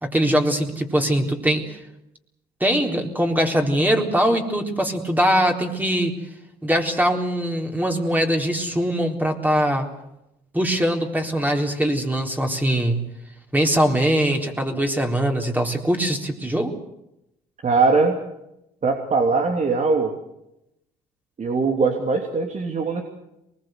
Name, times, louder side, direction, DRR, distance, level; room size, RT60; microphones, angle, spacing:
voice 1, 0.0-1.8 2.6-6.1 6.6-9.9 10.5-13.1 13.5-16.7, equal, 10° right, 2 dB, 4.0 m, -22 dB
voice 2, 17.6-18.2 18.8-20.1 21.4-23.0, right 4 dB, 40° right, 3 dB, 2.9 m, -21 dB
23.0 x 21.0 x 8.0 m, 0.86 s
hypercardioid pair, 65°, 19 cm